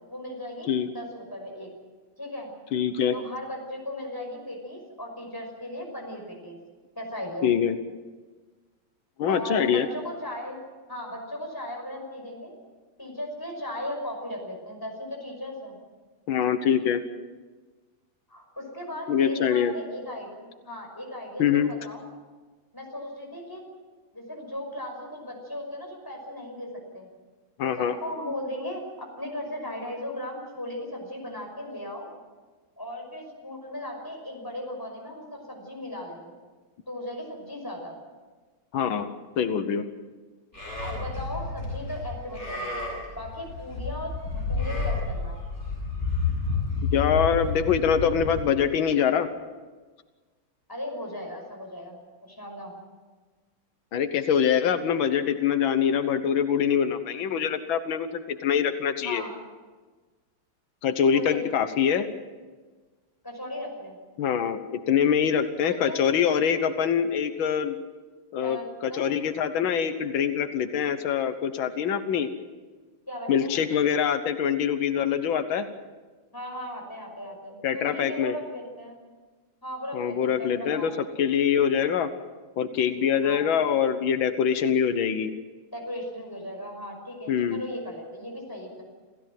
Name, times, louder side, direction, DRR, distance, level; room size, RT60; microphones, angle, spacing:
voice 1, 0.1-1.7 2.2-2.5 3.1-6.6 7.0-7.5 9.3-10.6 10.9-12.5 13.0-15.8 18.3-22.1 22.7-23.6 24.1-27.1 27.6-32.1 32.8-36.3 36.9-38.0 40.8-42.8 43.1-45.4 50.7-52.0 52.2-52.7 59.0-59.3 61.1-61.4 63.2-64.0 65.7-66.0 68.4-69.1 73.1-73.5 76.3-79.0 79.6-80.9 83.2-83.4 83.7-83.8 85.7-88.8, left 1 dB, 10° left, 1 dB, 5.7 m, -37 dB
voice 2, 2.7-3.1 7.4-7.8 9.2-9.9 16.3-17.0 19.1-19.7 21.4-21.7 27.6-28.0 38.7-39.1 39.4-39.8 46.9-49.3 53.9-59.2 60.8-62.1 64.2-67.8 68.3-72.3 73.3-75.7 77.6-78.3 79.9-80.9 81.2-82.1 82.6-85.3 87.3-87.6, left 8 dB, 90° left, 10 dB, 1.9 m, -24 dB
Livestock farm animals working animals, 40.5-48.4, left 4 dB, 35° left, 8.5 m, -30 dB
27.5 x 16.0 x 7.7 m, 1.4 s
omnidirectional pair, 2.1 m